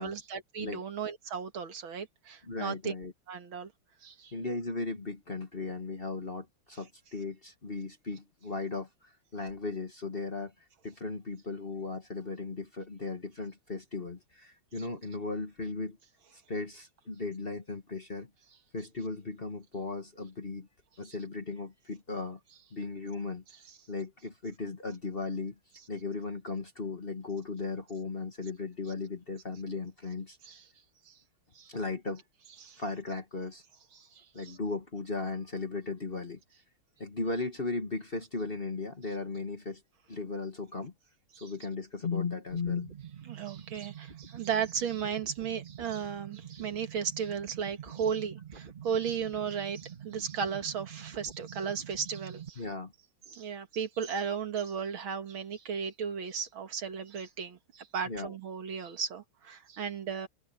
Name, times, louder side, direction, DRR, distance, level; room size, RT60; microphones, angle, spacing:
voice 1, 0.0-2.9 3.3-3.7 4.0-4.3 21.0-21.1 30.4-30.6 31.1-31.2 31.6-31.7 32.6-32.8 33.9-34.6 41.4-41.5 43.3-52.6 53.3-60.3, right 7 dB, 70° right, 2.4 m, -35 dB
voice 2, 2.4-3.1 4.3-10.5 10.8-16.0 16.5-18.3 18.7-20.7 21.0-22.4 22.7-23.4 23.9-25.5 25.9-30.4 31.7-32.2 32.8-33.6 34.3-36.4 37.0-39.8 40.1-40.9 41.3-42.9 52.6-52.9 58.1-58.4, left 3 dB, 30° left, 1.5 m, -36 dB
sound 1, 42.5-52.5, right 9 dB, 25° right, 1.3 m, -46 dB
omnidirectional pair, 2.4 m